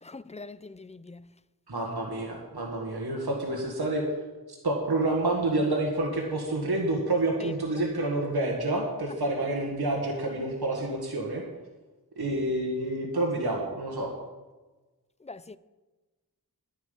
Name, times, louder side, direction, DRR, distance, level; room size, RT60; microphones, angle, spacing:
voice 1, 0.1-1.2 15.3-15.6, left 3 dB, 20° left, 0.4 m, -43 dB
voice 2, 1.7-4.0 4.5-11.4 12.2-14.1, right 2 dB, 80° right, 1.7 m, -28 dB
10.0 x 9.6 x 5.4 m
wide cardioid pair, 40°, 38 cm